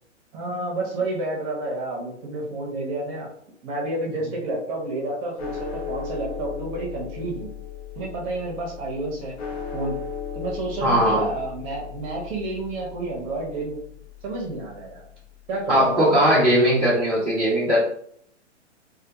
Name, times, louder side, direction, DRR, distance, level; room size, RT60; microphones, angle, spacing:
voice 1, 0.3-3.3 3.6-7.5 8.0-9.4 9.7-10.0 10.3-13.8 14.2-15.1 15.5-16.1, right 2 dB, 30° right, -2 dB, 0.7 m, -30 dB
sound 1, 5.4-15.8, left 7 dB, 60° left, 0.8 m, -37 dB
voice 2, 10.8-11.3 15.7-17.8, equal, ahead, -16 dB, 0.4 m, -19 dB
2.2 x 2.1 x 2.7 m, 0.66 s
figure-of-eight pair, 125°, 36 cm